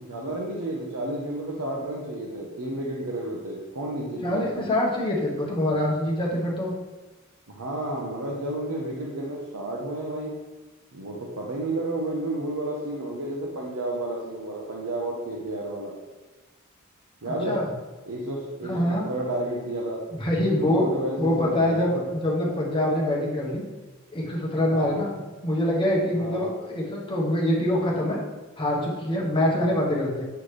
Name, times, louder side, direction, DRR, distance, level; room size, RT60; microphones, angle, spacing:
voice 1, 0.1-4.5 7.5-10.3 10.9-15.9 17.2-17.6 18.1-20.0 20.6-22.0 24.7-25.0 26.1-26.5 29.5-29.8, right 1 dB, 90° right, -3 dB, 0.9 m, -31 dB
voice 2, 4.2-6.7 17.2-17.7 18.6-19.1 20.1-20.8 21.2-23.6 24.1-25.1 25.4-28.2 28.6-30.2, left 1 dB, 25° left, -3 dB, 1.2 m, -25 dB
7.8 x 3.9 x 3.3 m, 1.3 s
head